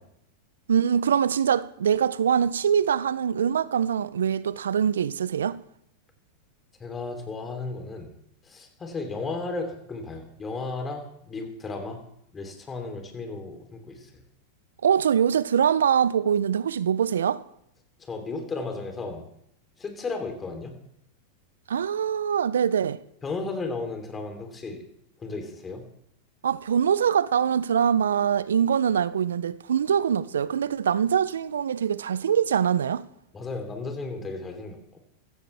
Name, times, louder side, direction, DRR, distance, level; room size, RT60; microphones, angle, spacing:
voice 1, 0.7-5.6 14.8-17.4 21.7-23.0 26.4-33.0, right 8 dB, 75° right, 0.5 m, -23 dB
voice 2, 6.8-8.1 8.5-12.0 12.3-14.1 18.1-19.2 19.8-20.7 23.2-24.8 25.2-25.8 33.3-35.0, left 3 dB, 20° left, 3.3 m, -34 dB
15.5 x 15.0 x 3.4 m
hypercardioid pair, 95°, 0 cm